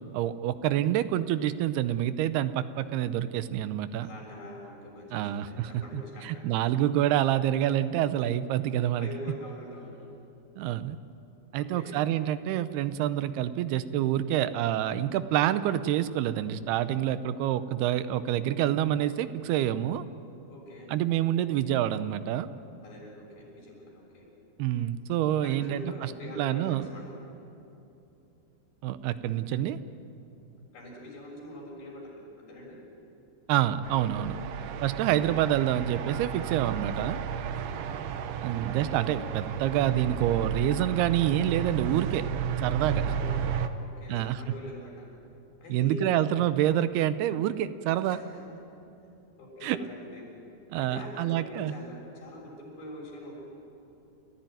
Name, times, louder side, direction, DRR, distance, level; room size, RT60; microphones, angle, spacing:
voice 1, 0.1-4.1 5.1-9.1 10.6-11.0 11.5-20.0 20.9-22.5 24.6-26.9 28.8-29.8 33.5-34.4 34.8-37.2 38.4-42.3 42.6-43.0 44.1-44.4 45.7-48.2 49.6-49.8 50.7-51.7, right 12 dB, 90° right, 12 dB, 2.8 m, -27 dB
voice 2, 4.0-6.5 9.0-10.1 11.6-12.0 20.5-20.9 22.8-24.3 25.4-27.0 30.7-32.8 34.9-35.4 37.5-37.9 42.9-43.3 43.8-45.0 45.6-46.2 48.1-48.2 49.4-50.2 50.8-52.5 52.8-53.4, left 1 dB, 65° left, -2 dB, 8.4 m, -44 dB
sound 1, 33.8-43.7, right 7 dB, 75° right, 2.4 m, -33 dB
29.0 x 15.0 x 9.2 m, 2.8 s
omnidirectional pair, 4.5 m